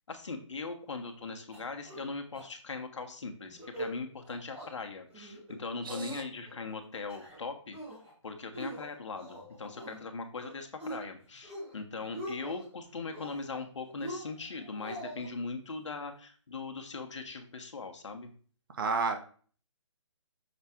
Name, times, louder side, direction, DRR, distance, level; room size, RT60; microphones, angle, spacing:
voice 1, 0.1-7.8 8.2-18.3, left 4 dB, 65° left, 5 dB, 1.3 m, -40 dB
sound 1, 1.5-2.1 2.3-2.4 2.8-3.1 3.5-3.9 4.2-4.7 5.1-5.5 5.9-6.5 6.9-7.4 7.7-8.1 8.5-10.0 10.4-11.0 11.4-11.8 12.0-12.7 13.1-13.6 14.0-15.3, right 1 dB, 10° right, 1.6 m, -43 dB
voice 2, 5.8-6.2 18.7-19.2, right 4 dB, 45° right, 5 dB, 1.2 m, -31 dB
6.6 x 3.6 x 4.4 m, 0.42 s
hypercardioid pair, 165°, 16 cm